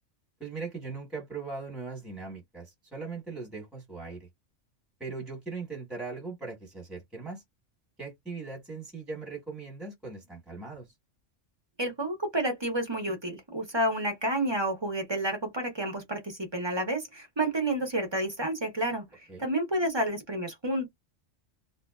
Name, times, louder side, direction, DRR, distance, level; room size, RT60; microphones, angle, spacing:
voice 1, 0.4-4.3 5.0-7.4 8.0-10.9 19.3-19.4, right 4 dB, ahead, 1.0 m, -39 dB
voice 2, 11.8-20.9, right 1 dB, 30° right, 0.6 m, -30 dB
2.5 x 2.1 x 2.2 m
omnidirectional pair, 1.3 m